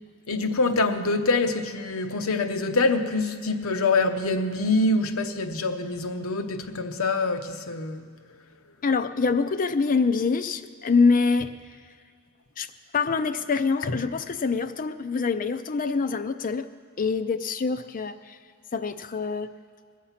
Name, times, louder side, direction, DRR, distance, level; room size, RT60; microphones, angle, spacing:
voice 1, 0.3-8.1 13.9-14.0, left 3 dB, 70° left, 0.8 m, -25 dB
voice 2, 8.8-11.5 12.6-16.7 17.0-18.4 18.7-19.5, left 4 dB, 40° left, 0.5 m, -25 dB
21.0 x 7.4 x 5.8 m
head